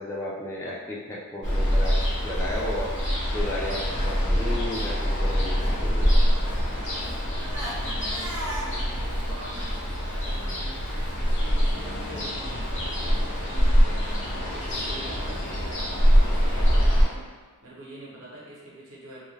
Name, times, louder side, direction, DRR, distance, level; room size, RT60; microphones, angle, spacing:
voice 1, 0.0-2.0 2.2-3.0 3.3-6.0, left 1 dB, 10° left, -6 dB, 0.3 m, -33 dB
Ocean, 1.4-17.0, equal, 55° left, 0.8 m, -24 dB
Crying sobbing, 3.7-5.8 6.1-11.1, right 1 dB, 20° right, 0.7 m, -40 dB
voice 2, 7.5-10.9 11.2-17.3 17.6-19.3, right 1 dB, 65° right, -6 dB, 0.8 m, -44 dB
2.3 x 2.2 x 3.1 m, 1.5 s
head